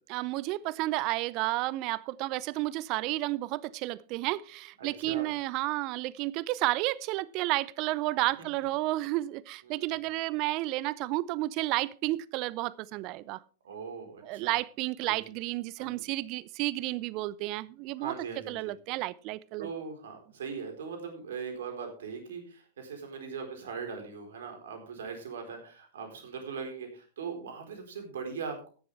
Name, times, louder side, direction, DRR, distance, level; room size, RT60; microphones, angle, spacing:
voice 1, 0.1-13.4 14.2-18.1 18.5-19.7, right 18 dB, 40° right, 0.5 m, -31 dB
voice 2, 4.8-5.3 9.6-10.0 13.6-14.6 15.0-15.2 15.8-16.0 18.0-18.7 19.6-28.7, right 5 dB, 65° right, 4.2 m, -40 dB
14.0 x 11.0 x 3.4 m
figure-of-eight pair, 95°, 0 cm